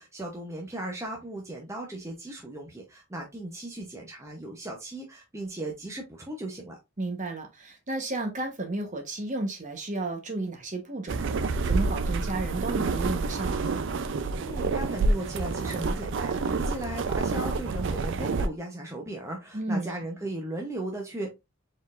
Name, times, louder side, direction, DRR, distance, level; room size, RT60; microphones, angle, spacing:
voice 1, 0.0-6.8 14.4-21.3, right 1 dB, 15° right, 0.7 m, -37 dB
voice 2, 7.0-11.4 11.7-13.7 19.5-19.9, right 2 dB, 35° right, 1.0 m, -32 dB
sound 1, 11.1-18.5, right 3 dB, 60° right, 0.4 m, -28 dB
4.3 x 3.8 x 2.4 m
head